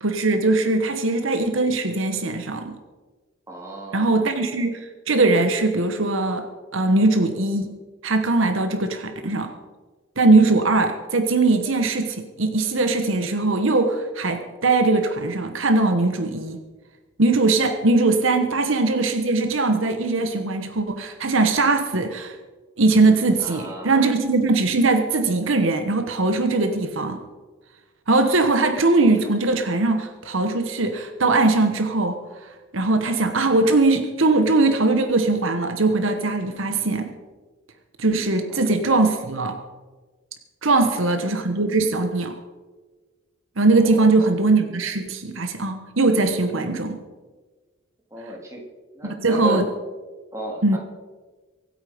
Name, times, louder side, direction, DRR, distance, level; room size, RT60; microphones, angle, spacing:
voice 1, 0.0-2.7 3.9-6.5 6.7-9.5 10.2-16.6 17.2-22.3 22.8-27.2 28.1-32.2 32.7-37.1 38.0-39.6 40.6-42.4 43.6-47.0 49.0-49.7 50.6-50.8, right 3 dB, 65° right, 7 dB, 1.2 m, -20 dB
voice 2, 3.5-4.3 18.5-18.6 23.4-24.1 38.5-38.7 40.7-41.0 41.5-41.6 43.8-44.3 48.1-48.6 48.9-49.6 50.3-50.8, right 2 dB, 15° right, -1 dB, 2.8 m, -35 dB
24.0 x 8.8 x 5.1 m, 1.3 s
head